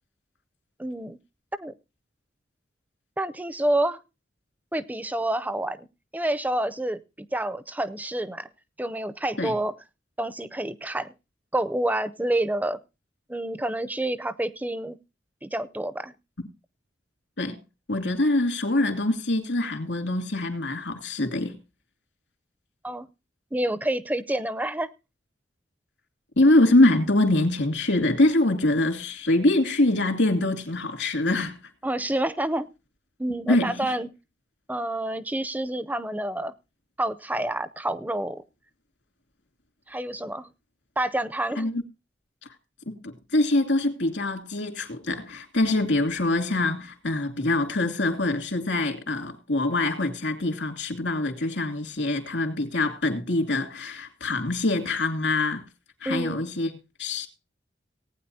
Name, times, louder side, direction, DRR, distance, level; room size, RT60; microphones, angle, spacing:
voice 1, 0.8-1.2 1.6-1.7 3.2-4.0 4.7-5.9 6.1-7.0 7.3-8.5 8.8-9.7 10.2-11.1 11.5-12.8 13.3-15.0 15.4-16.1 22.8-23.1 23.5-24.9 31.8-32.7 33.2-34.1 34.7-36.5 37.0-38.4 39.9-40.5 41.0-41.7 56.1-56.4, right 1 dB, 10° right, 0.5 m, -28 dB
voice 2, 17.9-21.6 26.4-31.6 33.5-33.8 41.6-41.8 42.9-55.7 56.0-56.7 57.0-57.3, left 2 dB, 80° left, 2.7 m, -24 dB
18.5 x 9.2 x 2.7 m
head